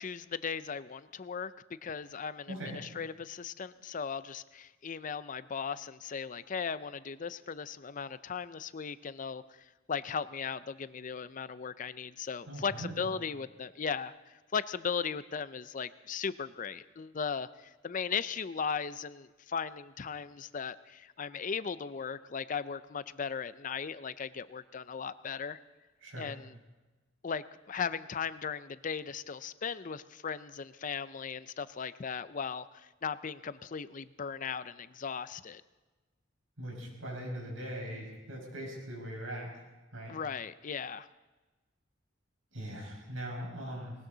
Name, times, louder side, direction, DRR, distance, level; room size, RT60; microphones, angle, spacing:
voice 1, 0.0-1.5 1.8-9.4 9.9-14.1 14.5-25.6 26.2-26.5 27.2-35.6 40.1-41.1, left 6 dB, 40° left, 15 dB, 0.5 m, -37 dB
voice 2, 2.5-2.8 12.5-13.2 26.0-26.3 36.6-39.5 39.9-40.2 42.5-43.9, right 1 dB, 90° right, -1 dB, 5.6 m, -40 dB
19.5 x 18.5 x 3.9 m, 1.2 s
head